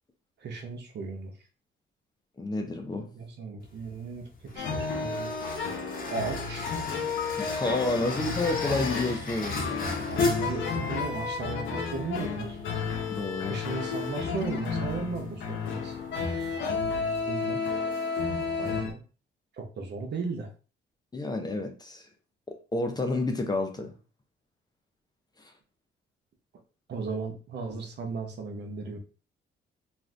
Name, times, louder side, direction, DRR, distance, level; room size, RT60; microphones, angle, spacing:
voice 1, 0.4-1.3 3.1-4.3 4.5-5.6 6.1-6.8 8.1-8.2 10.0-12.6 13.4-16.0 17.2-17.6 18.6-19.0 19.5-20.5 26.9-29.0, right 4 dB, 60° right, 0.7 m, -36 dB
voice 2, 2.4-3.1 7.4-9.6 13.1-13.6 18.6-18.8 21.1-22.1 22.5-23.9 25.4-25.5, left 2 dB, 20° left, 0.6 m, -30 dB
sound 1, 3.6-17.0, left 2 dB, 45° left, 0.9 m, -36 dB
sound 2, 4.6-18.9, left 5 dB, 75° left, 0.7 m, -32 dB
2.5 x 2.4 x 3.2 m
cardioid pair, 90°, 20 cm